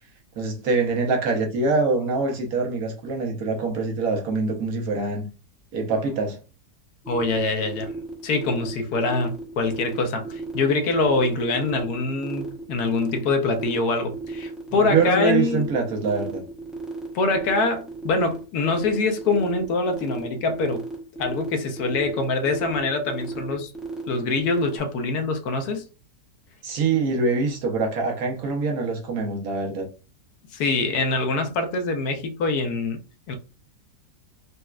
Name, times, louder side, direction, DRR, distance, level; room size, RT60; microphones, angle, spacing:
voice 1, 0.4-5.2 5.7-6.4 14.7-16.4 26.6-29.9, right 4 dB, 70° right, 1.3 m, -24 dB
sound 1, 7.0-24.8, right 2 dB, ahead, 0.3 m, -34 dB
voice 2, 7.1-7.9 8.2-15.7 17.1-20.8 21.2-23.7 24.1-25.8 30.5-33.0 33.3-33.4, left 3 dB, 75° left, 1.1 m, -24 dB
4.1 x 2.2 x 2.3 m
omnidirectional pair, 1.7 m